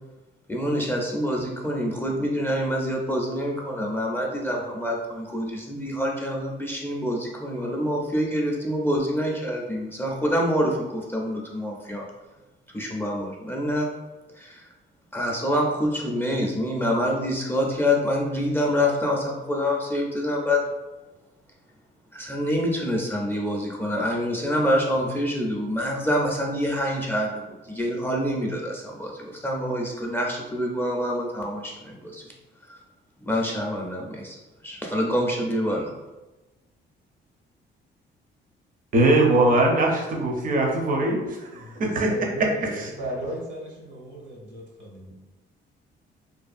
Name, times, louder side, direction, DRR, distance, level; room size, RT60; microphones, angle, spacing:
voice 1, 0.5-12.1 12.7-13.9 14.3-14.7 15.1-20.6 22.1-32.2 32.7-32.8 33.2-34.4 34.6-36.0, equal, 10° left, -1 dB, 0.4 m, -26 dB
voice 2, 38.9-42.1, right 2 dB, 45° right, 1 dB, 0.6 m, -21 dB
voice 3, 41.5-45.1, equal, 70° right, -2 dB, 0.9 m, -35 dB
2.5 x 2.3 x 2.4 m, 1.1 s
cardioid pair, 90°, 20 cm